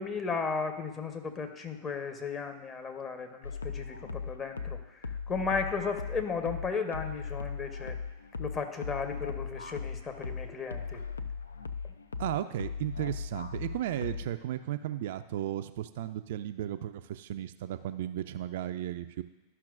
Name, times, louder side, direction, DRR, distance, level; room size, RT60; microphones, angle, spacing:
voice 1, 0.0-8.0 8.4-11.0, left 5 dB, 25° left, 5 dB, 1.0 m, -35 dB
sound 1, 3.4-14.4, left 5 dB, 80° left, 0.4 m, -38 dB
voice 2, 12.2-19.2, right 12 dB, 60° right, 10 dB, 0.3 m, -35 dB
12.0 x 5.7 x 2.5 m, 1.0 s
figure-of-eight pair, 90°, 0 cm